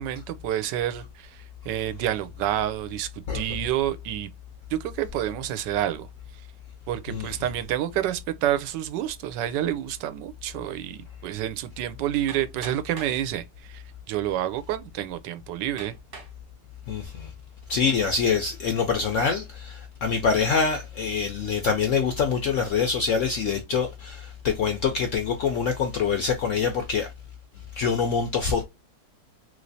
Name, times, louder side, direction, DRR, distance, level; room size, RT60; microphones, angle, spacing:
voice 1, 0.0-3.1 3.3-4.3 4.7-6.1 6.9-15.9, right 12 dB, 80° right, 1.2 m, -29 dB
Hammer, 12.3-13.2 14.1-14.2 14.8-14.9 15.8-16.4 17.0-17.4, right 4 dB, 45° right, 1.3 m, -43 dB
voice 2, 16.9-17.3 17.7-27.1 27.8-28.6, left 6 dB, 75° left, 0.7 m, -25 dB
3.1 x 3.1 x 2.5 m
omnidirectional pair, 1.9 m